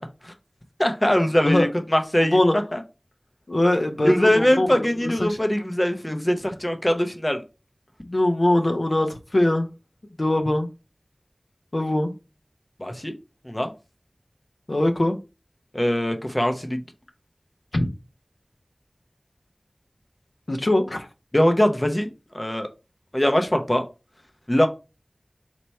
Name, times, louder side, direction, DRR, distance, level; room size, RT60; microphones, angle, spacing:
voice 1, 0.8-2.4 2.7-2.8 4.0-7.4 12.8-13.1 13.4-13.7 15.7-16.8 21.3-22.1 22.3-22.7 23.1-23.8 24.5-24.7, equal, 25° left, 0.6 m, -21 dB
voice 2, 2.2-2.6 3.5-5.4 8.0-9.7 10.2-10.7 11.7-12.1 14.7-15.2 20.5-21.1, left 1 dB, 65° left, 0.6 m, -22 dB
4.4 x 2.2 x 4.1 m
wide cardioid pair, 45°, 0 cm